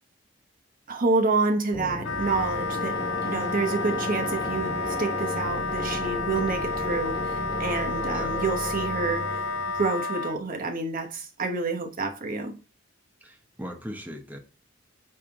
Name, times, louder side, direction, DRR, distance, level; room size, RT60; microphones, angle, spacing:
voice 1, 0.9-9.5 9.7-12.5, right 3 dB, 45° right, 1.1 m, -28 dB
sound 1, 1.7-10.0, left 2 dB, 20° left, 0.5 m, -34 dB
Wind instrument woodwind instrument, 2.0-10.4, left 3 dB, 80° left, 0.6 m, -31 dB
voice 2, 13.2-14.4, equal, 10° right, 1.2 m, -39 dB
8.7 x 3.6 x 4.6 m
head